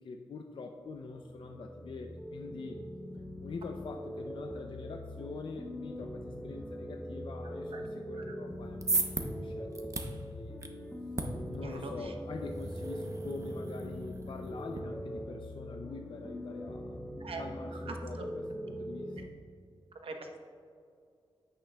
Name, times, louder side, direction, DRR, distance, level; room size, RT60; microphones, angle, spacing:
voice 1, 0.0-2.8 3.4-10.5 11.5-17.0 17.4-19.2, left 4 dB, 60° left, 3 dB, 0.4 m, -45 dB
sound 1, 0.9-19.3, equal, 10° left, 0.6 m, -42 dB
sound 2, 8.5-14.8, right 3 dB, 35° right, 0.7 m, -38 dB
voice 2, 11.6-12.1 17.2-17.4 17.7-18.2 20.0-20.4, right 3 dB, 80° right, 3 dB, 0.9 m, -43 dB
9.8 x 8.5 x 2.2 m, 2.4 s
wide cardioid pair, 110°, 9 cm